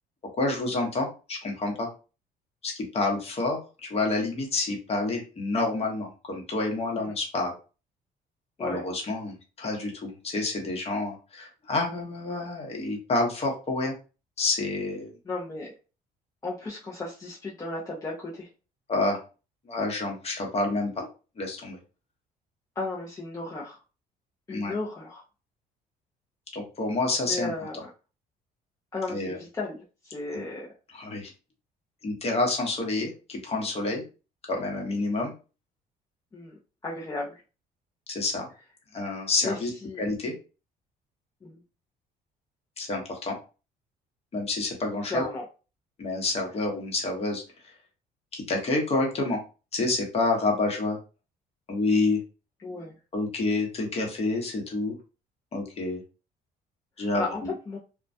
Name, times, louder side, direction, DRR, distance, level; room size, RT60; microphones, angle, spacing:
voice 1, 0.3-1.9 2.6-7.5 8.6-13.9 14.4-15.1 18.9-19.2 19.7-21.1 21.4-21.8 24.5-24.7 26.5-27.5 29.1-29.4 30.3-30.4 30.9-31.3 32.0-34.0 34.5-35.3 38.1-38.5 38.9-39.7 40.0-40.3 42.8-43.3 44.3-45.2 46.0-47.4 48.3-49.4 49.7-51.0 51.7-52.2 53.1-55.0 55.5-56.0 57.0-57.5, left 2 dB, 35° left, 1 dB, 1.0 m, -28 dB
voice 2, 15.3-15.7 16.4-18.5 22.8-23.8 24.5-25.2 27.3-27.8 28.9-30.7 36.3-36.6 36.8-37.4 39.4-39.6 39.8-40.0 41.4-41.6 45.1-45.4 52.6-52.9 57.0-57.8, left 3 dB, 20° left, -5 dB, 0.6 m, -34 dB
2.2 x 2.1 x 2.6 m, 0.33 s
cardioid pair, 110°, 17 cm